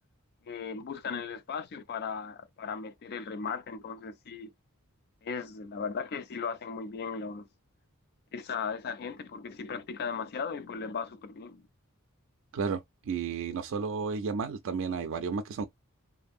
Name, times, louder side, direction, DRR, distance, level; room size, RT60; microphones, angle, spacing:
voice 1, 0.5-4.5 5.2-7.5 8.3-11.7, left 5 dB, 45° left, 0.4 m, -37 dB
voice 2, 12.5-15.7, right 5 dB, 60° right, 0.4 m, -32 dB
2.6 x 2.6 x 2.3 m
head